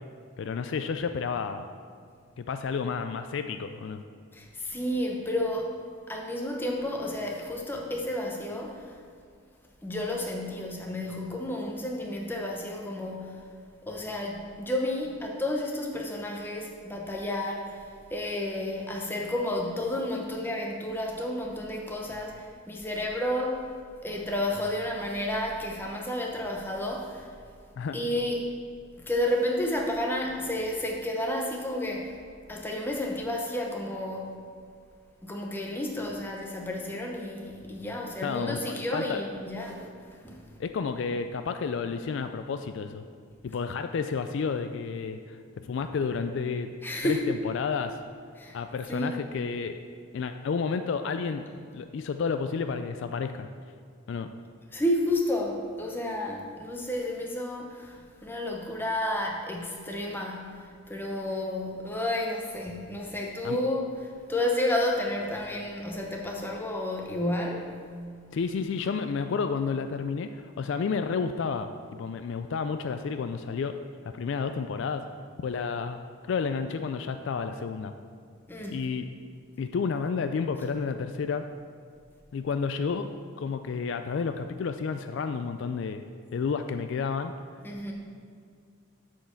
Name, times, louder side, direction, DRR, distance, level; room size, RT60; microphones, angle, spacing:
voice 1, 0.4-1.7 2.4-4.0 27.8-28.0 38.2-38.6 38.9-39.2 40.6-43.0 43.4-46.7 47.0-48.0 48.5-49.8 50.1-51.5 51.7-53.5 54.1-54.3 63.4-63.6 68.3-73.8 74.0-75.1 75.4-76.0 76.2-77.9 78.7-79.1 79.6-81.4 82.3-86.0 86.3-87.3, left 5 dB, 60° left, 8 dB, 0.3 m, -31 dB
voice 2, 4.3-5.8 6.1-9.0 9.8-13.4 13.9-23.7 24.0-27.3 27.9-28.5 29.0-32.2 32.5-34.3 35.2-39.9 40.2-40.4 46.8-47.3 48.4-48.6 48.9-49.2 54.7-64.0 64.3-67.8 78.5-78.8 87.6-87.9, left 1 dB, 10° left, 0 dB, 0.8 m, -31 dB
7.5 x 4.5 x 7.0 m, 2.2 s
head